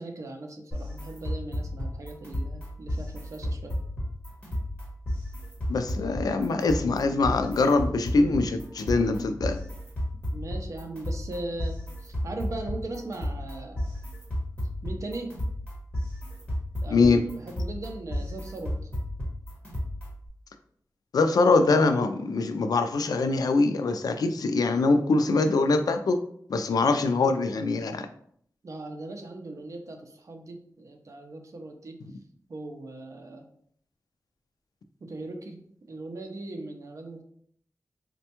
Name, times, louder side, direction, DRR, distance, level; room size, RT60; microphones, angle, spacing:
voice 1, 0.0-3.8 10.3-13.9 14.8-15.4 16.8-18.9 28.6-32.0 32.5-33.5 35.0-37.2, right 2 dB, 50° right, 4 dB, 0.5 m, -39 dB
sound 1, 0.7-20.3, left 1 dB, 15° left, 1.3 m, -33 dB
voice 2, 5.7-9.6 16.9-17.2 21.1-26.2 26.5-28.1, left 3 dB, 75° left, 8 dB, 0.3 m, -23 dB
4.1 x 2.2 x 2.9 m, 0.64 s
wide cardioid pair, 115°, 7 cm